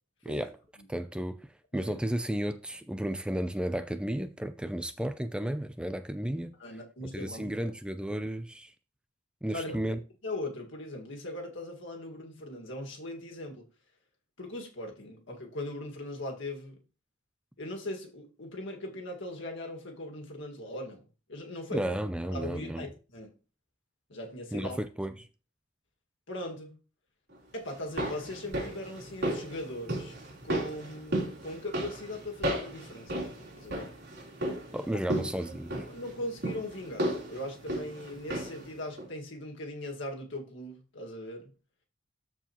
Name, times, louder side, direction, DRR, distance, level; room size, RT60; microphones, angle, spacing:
voice 1, 0.9-6.6 7.1-8.7 9.4-10.0 21.7-22.9 24.5-25.1 34.7-35.8, right 1 dB, 5° right, 0.4 m, -33 dB
voice 2, 6.6-7.7 9.5-13.7 14.4-16.8 17.6-22.0 22.3-23.3 24.1-24.8 26.3-26.8 27.5-30.1 30.4-33.1 33.5-33.9 35.1-35.5 35.8-41.5, left 1 dB, 65° left, 1.9 m, -40 dB
sound 1, 27.7-38.7 39.0-39.1, right 1 dB, 55° right, 3.5 m, -35 dB
13.0 x 4.6 x 3.0 m
head